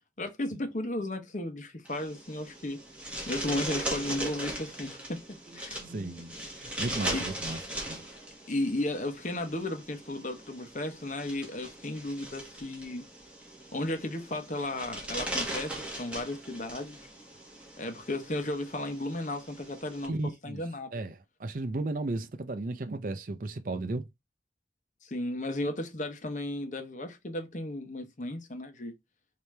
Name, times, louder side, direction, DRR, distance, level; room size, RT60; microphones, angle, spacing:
voice 1, 0.2-2.8 3.3-5.8 7.1-7.3 8.5-13.0 13.7-17.0 17.8-20.1 20.4-20.9 25.0-28.9, left 1 dB, 45° left, 1.0 m, -34 dB
sound 1, 1.9-20.1, right 1 dB, 5° right, 1.4 m, -39 dB
voice 2, 5.8-7.6 7.9-8.0 20.1-20.6 20.9-24.1, right 2 dB, 50° right, 0.5 m, -35 dB
4.9 x 2.9 x 3.3 m
head